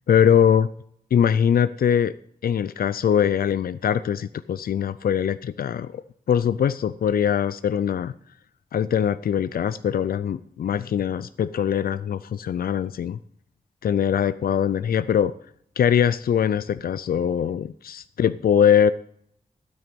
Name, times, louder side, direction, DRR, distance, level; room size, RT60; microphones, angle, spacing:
voice 1, 0.1-0.7 1.1-2.1 2.4-6.0 6.3-8.1 8.7-13.2 13.8-15.3 15.8-18.9, left 8 dB, 85° left, 14 dB, 0.4 m, -22 dB
12.5 x 9.3 x 5.2 m, 0.70 s
wide cardioid pair, 145°, 15 cm